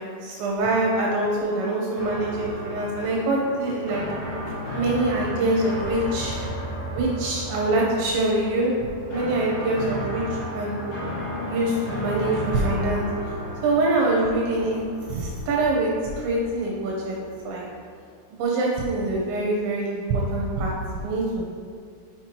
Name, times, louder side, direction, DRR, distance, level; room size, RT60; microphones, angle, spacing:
voice 1, 0.0-4.0 4.7-6.5 6.9-8.7 9.1-10.8 11.5-13.1 13.6-14.8 15.1-15.9 16.2-17.2 17.4-17.7 18.4-20.7 21.0-21.6, right 2 dB, 75° right, -3 dB, 2.9 m, -24 dB
sound 1, 2.0-17.9, equal, 70° left, 4.1 m, -34 dB
7.7 x 6.2 x 2.9 m, 2.1 s
omnidirectional pair, 5.7 m